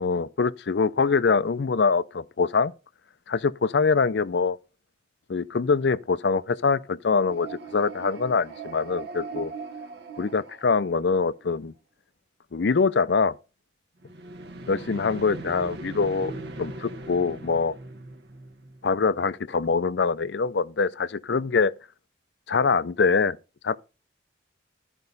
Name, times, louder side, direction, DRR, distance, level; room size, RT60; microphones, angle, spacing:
voice 1, 0.0-2.7 3.3-4.6 5.3-9.5 10.2-11.7 12.5-13.3 14.7-17.7 18.8-21.7 22.5-23.4 23.6-23.8, left 4 dB, 60° left, 0.5 m, -24 dB
sound 1, 7.1-11.4 14.0-19.0, right 3 dB, 55° right, 1.1 m, -40 dB
13.0 x 5.3 x 3.9 m
head